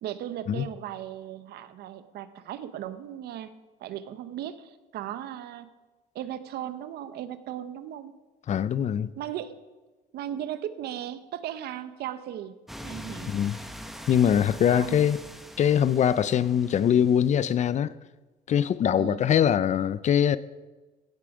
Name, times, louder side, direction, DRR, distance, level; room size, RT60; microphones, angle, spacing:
voice 1, 0.0-3.5 3.8-5.7 6.1-8.1 9.2-9.5 10.1-13.4 14.7-15.0 19.0-19.3, right 11 dB, 75° right, 0.9 m, -37 dB
voice 2, 8.5-9.1 13.3-13.6 14.1-15.2 15.6-17.9 18.5-20.4, left 9 dB, 45° left, 0.5 m, -22 dB
sound 1, 12.7-17.5, equal, ahead, 1.2 m, -43 dB
16.5 x 8.7 x 4.9 m
cardioid pair, 110°, 17 cm